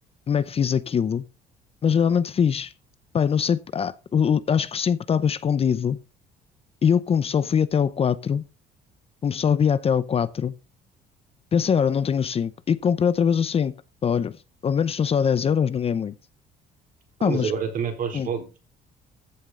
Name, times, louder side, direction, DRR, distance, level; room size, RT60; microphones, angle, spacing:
voice 1, 0.3-1.2 1.8-2.7 3.1-6.0 6.8-8.4 9.2-10.5 11.5-13.7 14.0-14.4 14.6-16.1 17.2-17.5 18.1-18.3, left 7 dB, 35° left, 0.7 m, -22 dB
voice 2, 17.2-18.6, right 6 dB, 55° right, 4.3 m, -28 dB
14.5 x 7.3 x 3.8 m
cardioid pair, 110°, 17 cm